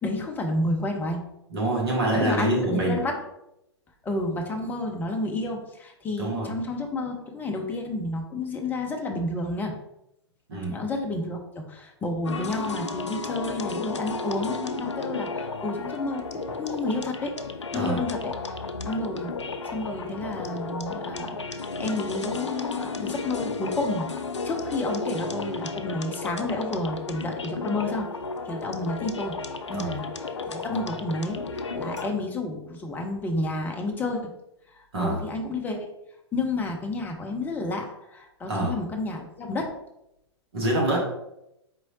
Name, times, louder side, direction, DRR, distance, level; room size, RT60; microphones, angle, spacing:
voice 1, 0.0-1.2 2.1-3.2 4.0-9.7 10.7-17.4 17.7-18.3 18.9-19.3 19.7-21.4 21.8-24.1 24.4-28.1 28.5-29.4 29.7-30.0 30.5-34.2 35.0-35.9 36.3-39.7, left 2 dB, 10° left, 2 dB, 0.6 m, -30 dB
voice 2, 1.5-3.0 6.2-6.5 10.5-10.8 17.7-18.0 29.7-30.0 34.9-35.2 38.5-38.7 40.5-41.0, right 1 dB, 60° right, -2 dB, 1.5 m, -25 dB
sound 1, 12.2-32.1, left 3 dB, 85° left, 0.4 m, -33 dB
4.5 x 3.1 x 2.7 m, 0.83 s
figure-of-eight pair, 110°, 15 cm